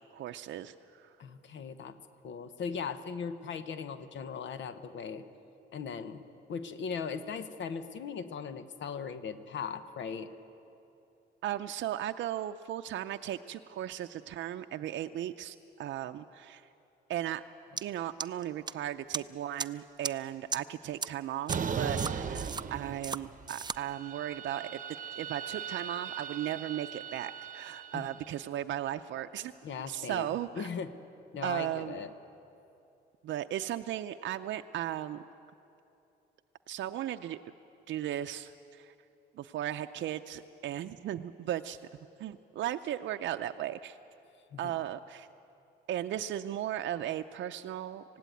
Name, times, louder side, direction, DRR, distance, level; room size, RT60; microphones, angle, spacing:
voice 1, 0.0-1.1 11.4-16.6 17.1-17.4 17.8-24.8 25.2-29.5 29.9-30.7 31.4-32.0 33.2-35.2 36.7-37.4 37.9-38.9 39.4-41.8 42.2-44.0 44.6-45.3 45.9-48.2, right 11 dB, 70° right, 7 dB, 0.5 m, -36 dB
voice 2, 1.2-2.0 2.2-5.2 5.7-10.3 27.9-28.1 29.6-30.9 31.3-32.1 44.5-44.7, left 6 dB, 65° left, 11 dB, 1.0 m, -39 dB
sound 1, 17.8-17.9 18.2-18.7 19.1-19.2 19.6-19.7 20.0-20.1 20.5-20.6 21.0-21.1 21.5-21.6 22.0-22.6 23.0-23.2 23.5-23.8, right 5 dB, 20° right, 0.4 m, -34 dB
sound 2, 21.5-23.5 23.8-28.1, right 7 dB, 40° right, 0.9 m, -38 dB
19.5 x 16.0 x 9.2 m, 2.8 s
cardioid pair, 90°, 20 cm